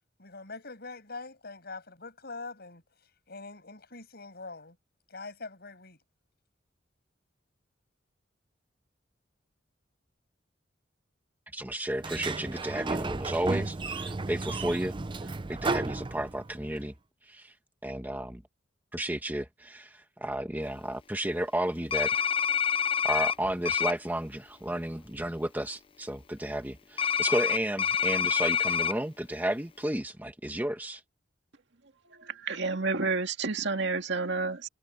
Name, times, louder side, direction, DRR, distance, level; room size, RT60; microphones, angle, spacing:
voice 1, 0.2-2.8 3.3-4.8 5.1-6.0, left 3 dB, 60° left, 7.8 m, -43 dB
voice 2, 11.5-14.9 15.2-16.9 17.3-17.5 17.8-18.4 18.9-22.3 23.0-31.0, right 1 dB, 10° right, 1.1 m, -33 dB
Sliding door, 12.0-16.7, right 3 dB, 25° right, 0.5 m, -33 dB
sound 1, 21.9-23.4 23.7-23.9 27.0-28.9, left 8 dB, 30° left, 0.4 m, -26 dB
voice 3, 32.2-34.7, right 3 dB, 65° right, 2.2 m, -30 dB
head